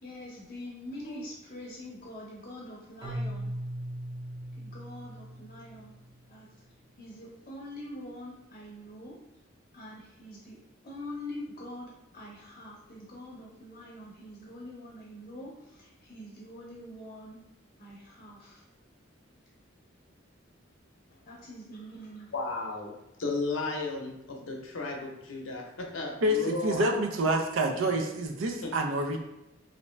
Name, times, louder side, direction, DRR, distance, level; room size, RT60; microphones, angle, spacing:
voice 1, 0.0-3.5 4.6-5.9 6.3-6.5 7.0-9.1 9.7-10.5 10.8-15.5 15.8-17.4 17.8-18.6 21.3-22.3, left 1 dB, 40° left, -5 dB, 0.7 m, -44 dB
Keyboard (musical), 3.0-6.0, right 1 dB, 30° right, 1.1 m, -38 dB
voice 2, 22.3-22.9 23.2-26.9 28.6-28.7, left 3 dB, 85° left, 0 dB, 0.7 m, -34 dB
voice 3, 26.2-29.2, right 1 dB, 85° right, 3 dB, 0.5 m, -27 dB
3.1 x 2.6 x 3.2 m, 0.89 s
head